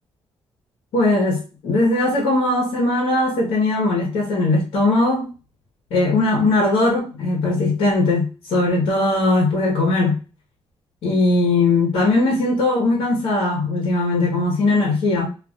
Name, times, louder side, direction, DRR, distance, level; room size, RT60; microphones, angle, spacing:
voice 1, 0.9-5.3 5.9-10.2 11.0-15.3, left 2 dB, 80° left, 1.3 m, -19 dB
2.7 x 2.6 x 3.7 m
cardioid pair, 100°, 9 cm